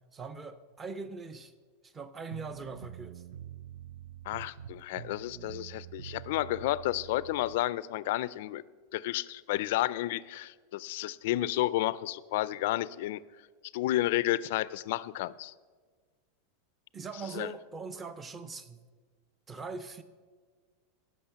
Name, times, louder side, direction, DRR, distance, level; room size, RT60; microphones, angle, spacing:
voice 1, 0.1-1.5 1.8-3.2 16.9-18.8 19.5-20.0, right 4 dB, 15° right, 0.5 m, -41 dB
sound 1, 2.3-7.6, right 10 dB, 75° right, 0.4 m, -46 dB
voice 2, 4.3-8.6 8.9-13.2 13.7-15.5 17.3-17.5, left 15 dB, 60° left, 0.3 m, -31 dB
16.0 x 6.3 x 5.7 m
supercardioid pair, 170°, 0 cm